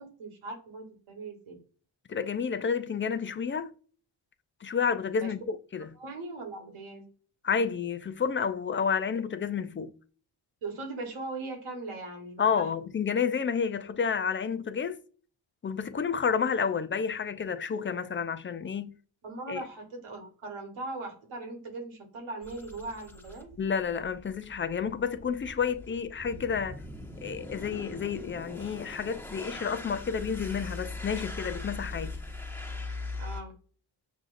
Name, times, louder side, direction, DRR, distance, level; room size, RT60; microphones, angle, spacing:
voice 1, 0.0-1.5 5.1-5.3 5.9-7.0 10.6-12.7 19.2-23.5 33.2-33.5, right 2 dB, 75° right, 1.5 m, -39 dB
voice 2, 2.1-3.7 4.6-5.9 7.4-9.9 12.4-15.0 15.6-18.9 19.5-19.6 23.6-26.8 27.2-32.2, left 6 dB, 25° left, 0.4 m, -30 dB
sound 1, 22.4-33.4, left 2 dB, 5° left, 1.2 m, -41 dB
6.1 x 2.5 x 2.5 m
supercardioid pair, 45°, 50 cm